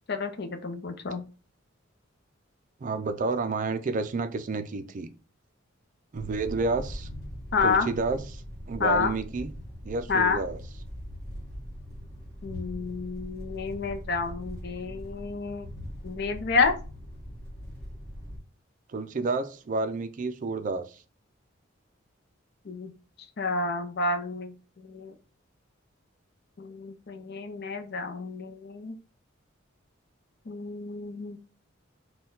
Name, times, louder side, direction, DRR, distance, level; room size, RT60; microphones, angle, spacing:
voice 1, 0.1-1.2 7.5-7.9 8.8-9.1 10.1-10.4 12.4-15.7 16.0-16.7 22.7-22.9 23.4-25.1 26.6-29.0 30.5-31.4, left 4 dB, 55° left, 0.6 m, -29 dB
voice 2, 2.8-5.1 6.1-7.1 7.6-9.5 9.8-10.6 18.9-21.0, right 3 dB, 40° right, 0.4 m, -30 dB
sound 1, 6.1-18.4, equal, 5° left, 1.9 m, -41 dB
4.2 x 2.2 x 3.8 m
head